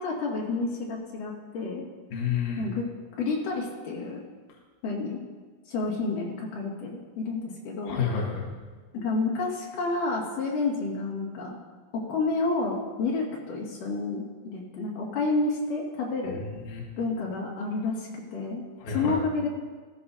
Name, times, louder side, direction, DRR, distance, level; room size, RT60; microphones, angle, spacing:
voice 1, 0.0-1.9 2.6-2.8 3.2-4.2 4.8-5.2 5.7-8.0 8.9-11.6 11.9-16.4 17.0-18.6 18.9-19.5, left 3 dB, 50° left, -4 dB, 3.0 m, -30 dB
voice 2, 2.1-2.7 7.8-8.5 16.4-16.9 18.8-19.2, left 6 dB, 70° left, -2 dB, 1.7 m, -30 dB
15.0 x 15.0 x 2.8 m, 1.4 s
omnidirectional pair, 5.9 m